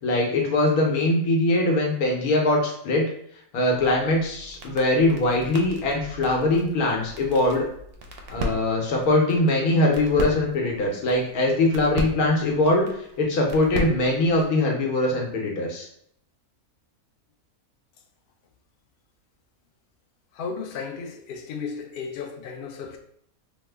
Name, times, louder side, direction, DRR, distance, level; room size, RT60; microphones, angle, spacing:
voice 1, 0.0-3.1 3.5-7.7 8.3-12.9 13.2-15.9, left 2 dB, 90° left, 1.3 m, -22 dB
sound 1, 3.8-14.6, equal, 65° right, 0.6 m, -37 dB
voice 2, 20.3-23.0, left 5 dB, 70° left, 0.5 m, -34 dB
3.1 x 2.1 x 3.2 m
omnidirectional pair, 1.5 m